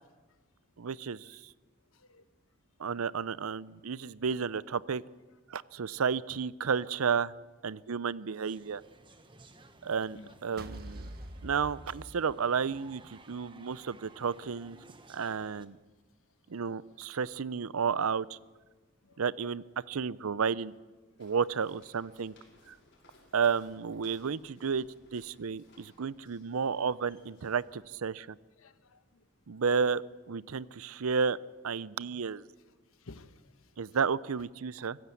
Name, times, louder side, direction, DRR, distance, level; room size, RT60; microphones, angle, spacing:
voice 1, 0.8-1.5 2.8-5.0 5.5-7.3 7.6-8.8 9.8-11.1 11.4-14.8 15.1-15.8 16.5-18.4 19.2-20.7 21.2-22.3 22.7-22.8 23.3-24.9 25.1-28.4 29.5-30.0 30.3-31.4 31.6-32.4 33.8-35.0, right 6 dB, 90° right, 0.6 m, -32 dB
voice 2, 1.9-2.2 9.8-10.3 19.0-19.2 28.6-29.0 30.6-30.7 33.0-33.7, left 2 dB, 80° left, 1.2 m, -53 dB
sound 1, 8.4-15.6, right 2 dB, 25° right, 1.2 m, -57 dB
sound 2, 10.6-12.9, right 1 dB, 45° right, 1.3 m, -45 dB
Walk footsteps, 21.2-27.9, left 2 dB, 55° left, 6.0 m, -63 dB
24.0 x 15.5 x 8.4 m
head